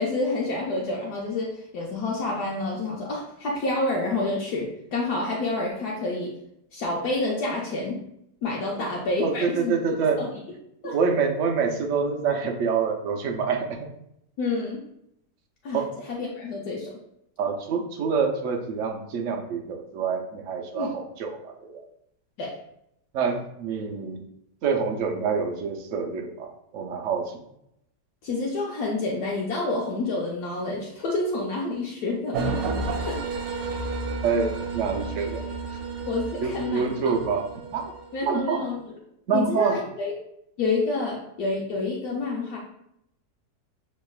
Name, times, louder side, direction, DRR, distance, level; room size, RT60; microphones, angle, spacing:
voice 1, 0.0-6.3 6.7-8.0 8.4-9.8 10.2-10.3 10.8-11.0 14.4-14.8 15.6-15.8 16.1-16.9 20.7-20.9 22.4-22.5 28.2-32.6 33.0-33.2 36.1-37.2 38.1-38.9 39.3-40.1 40.6-42.6, left 2 dB, 70° left, -2 dB, 1.1 m, -28 dB
voice 2, 9.2-10.3 10.8-13.8 15.7-15.9 17.4-21.8 23.1-24.2 24.6-27.3 34.2-35.4 36.4-37.9 38.2-38.7 39.3-39.8, right 5 dB, 70° right, 4 dB, 0.7 m, -26 dB
sound 1, 32.3-38.3, right 3 dB, 90° right, 1.3 m, -31 dB
6.3 x 3.0 x 2.3 m, 0.77 s
omnidirectional pair, 1.9 m